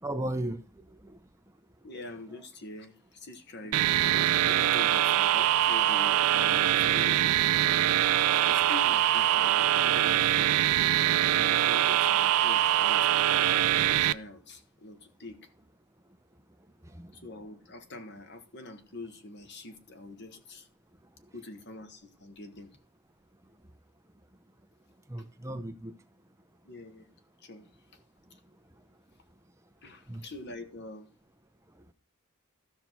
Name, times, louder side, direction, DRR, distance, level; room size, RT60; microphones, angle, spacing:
voice 1, 0.0-1.2 16.8-17.1 25.1-25.9 30.1-30.2, right 1 dB, 15° right, 0.9 m, -36 dB
voice 2, 1.8-7.9 8.4-13.2 13.9-15.5 17.1-20.7 21.3-22.7 26.6-27.1 27.4-27.7 28.3-28.4 29.8-31.1, left 2 dB, 50° left, 1.5 m, -45 dB
sound 1, 3.7-14.1, right 12 dB, 85° right, 0.4 m, -24 dB
13.5 x 5.9 x 4.5 m
head